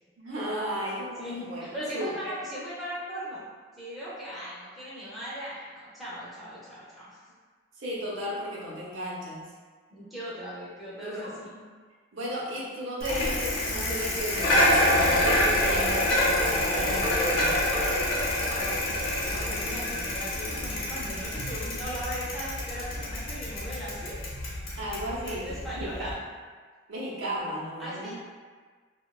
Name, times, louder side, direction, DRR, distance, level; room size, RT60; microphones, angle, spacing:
voice 1, 0.2-2.3 7.8-9.4 11.0-11.3 12.1-17.6 24.8-26.1 26.9-28.1, equal, 80° right, -6 dB, 0.7 m, -34 dB
voice 2, 1.2-3.4 3.7-7.2 9.9-11.7 18.5-24.2 25.3-26.2 27.8-28.1, equal, ahead, -10 dB, 0.6 m, -38 dB
Bicycle, 13.0-26.1, left 1 dB, 80° left, 0.7 m, -27 dB
2.8 x 2.2 x 2.3 m, 1.5 s
head